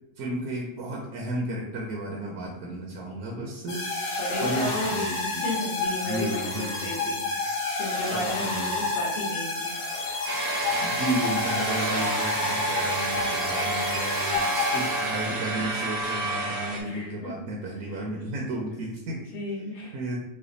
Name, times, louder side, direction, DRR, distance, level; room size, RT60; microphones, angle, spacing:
voice 1, 0.2-5.4 6.0-7.2 8.1-8.9 10.8-19.2 19.9-20.2, right 1 dB, 70° right, -1 dB, 0.9 m, -33 dB
sound 1, 3.7-15.5, left 3 dB, 85° left, 1.4 m, -30 dB
voice 2, 4.2-9.8 16.8-17.3 19.3-19.9, left 2 dB, 50° left, -3 dB, 1.1 m, -34 dB
sound 2, 10.3-16.8, right 2 dB, 50° right, 0.4 m, -30 dB
3.2 x 2.2 x 3.8 m, 0.86 s
omnidirectional pair, 1.7 m